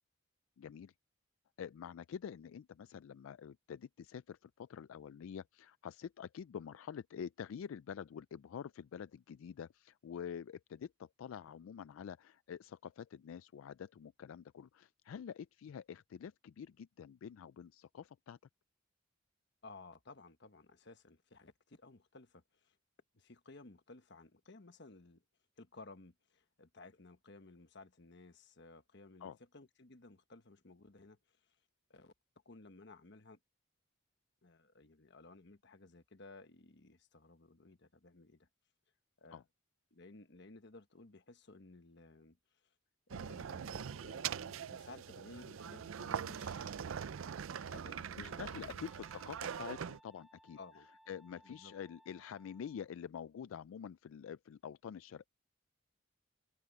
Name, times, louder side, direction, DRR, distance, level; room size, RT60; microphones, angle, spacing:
voice 1, 0.6-0.9 1.6-18.4 29.2-29.4 39.3-39.4 48.2-50.6 51.1-55.3, left 7 dB, 80° left, 0.3 m, -47 dB
voice 2, 19.6-22.8 23.1-25.2 25.6-31.2 31.9-32.1 32.4-33.4 34.4-38.5 39.2-39.4 39.9-42.4 42.6-42.7 43.1-48.4 48.7-48.9 50.6-50.9 51.4-51.7, left 3 dB, 60° left, 1.3 m, -57 dB
sound 1, 43.1-50.0, right 7 dB, 80° right, 0.5 m, -42 dB
Wind instrument woodwind instrument, 47.8-52.9, equal, ahead, 2.1 m, -65 dB
head